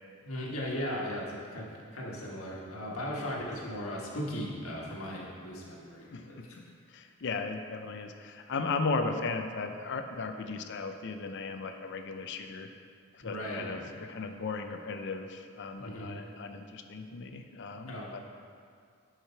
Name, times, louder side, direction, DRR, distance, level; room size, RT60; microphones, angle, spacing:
voice 1, 0.2-6.6 13.2-14.0 15.8-16.2 17.9-18.1, equal, 80° left, -3 dB, 1.6 m, -37 dB
voice 2, 6.1-6.5 6.9-12.7 13.2-13.8 14.1-18.2, left 4 dB, 55° left, 7 dB, 0.5 m, -36 dB
10.5 x 5.0 x 4.5 m, 2.2 s
head